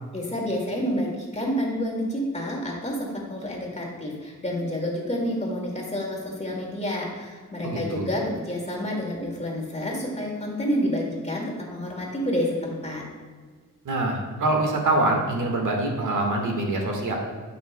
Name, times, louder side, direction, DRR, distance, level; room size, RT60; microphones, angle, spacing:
voice 1, 0.1-13.0, equal, 20° left, -2 dB, 2.1 m, -29 dB
voice 2, 7.6-8.1 13.9-17.1, right 2 dB, 65° right, 1 dB, 1.6 m, -24 dB
13.5 x 5.9 x 2.2 m, 1.5 s
cardioid pair, 95°, 33 cm